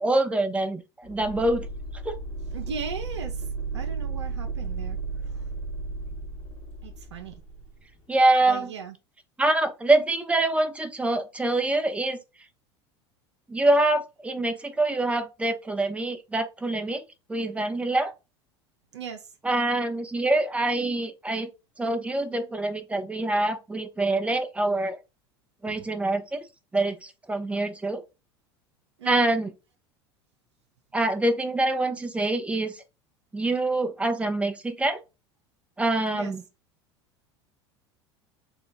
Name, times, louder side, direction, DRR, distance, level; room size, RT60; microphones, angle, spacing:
voice 1, 0.0-1.7 2.0-2.2 8.1-8.7 9.4-12.2 13.5-17.0 17.3-18.1 19.4-21.5 21.8-25.0 25.6-26.4 26.7-28.0 29.1-29.5 30.9-32.8 33.3-35.0 35.8-36.4, right 2 dB, 10° right, 0.7 m, -25 dB
sound 1, 1.0-7.7, right 4 dB, 75° left, 1.3 m, -34 dB
voice 2, 2.5-3.5 3.7-5.0 5.4-5.5 6.8-7.4 8.5-8.9 18.9-19.3 25.7-25.9 29.0-29.4 36.1-36.3, right 6 dB, 85° right, 0.6 m, -38 dB
3.9 x 2.3 x 3.9 m
hypercardioid pair, 80°, 14 cm